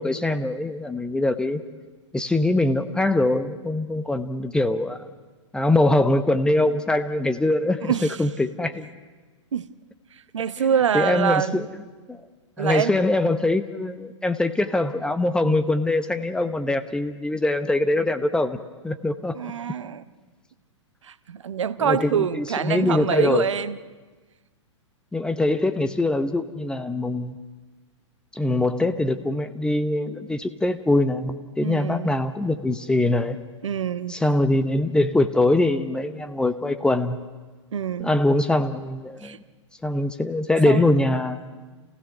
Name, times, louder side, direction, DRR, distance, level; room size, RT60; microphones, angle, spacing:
voice 1, 0.0-1.6 2.1-5.0 5.5-7.9 8.2-8.8 10.6-10.7 10.9-11.6 12.1-12.2 12.6-18.6 18.8-19.3 21.8-23.5 25.1-27.3 28.4-33.4 34.1-37.2 38.0-39.4 39.8-41.4, left 2 dB, 5° left, 10 dB, 0.9 m, -23 dB
voice 2, 7.8-8.2 9.5-9.7 10.3-11.6 12.6-13.0 19.3-20.0 21.0-23.8 31.6-32.2 33.6-34.2 37.7-38.1 39.2-39.4 40.7-41.0, right 8 dB, 75° right, 15 dB, 0.9 m, -25 dB
29.0 x 16.0 x 6.7 m, 1.3 s
figure-of-eight pair, 110°, 16 cm